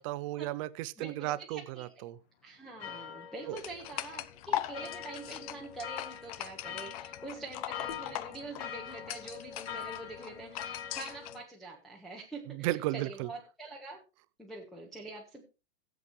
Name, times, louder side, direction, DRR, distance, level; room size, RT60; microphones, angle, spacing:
voice 1, 0.0-2.2 3.5-3.6 12.5-13.3, right 16 dB, 30° right, 0.5 m, -34 dB
voice 2, 1.0-1.9 2.4-14.0 14.4-15.4, right 2 dB, ahead, 1.5 m, -45 dB
sound 1, 2.8-11.4, left 8 dB, 65° left, 2.5 m, -44 dB
sound 2, 3.6-11.4, left 14 dB, 30° left, 0.6 m, -40 dB
18.0 x 8.0 x 3.2 m
hypercardioid pair, 145°, 35 cm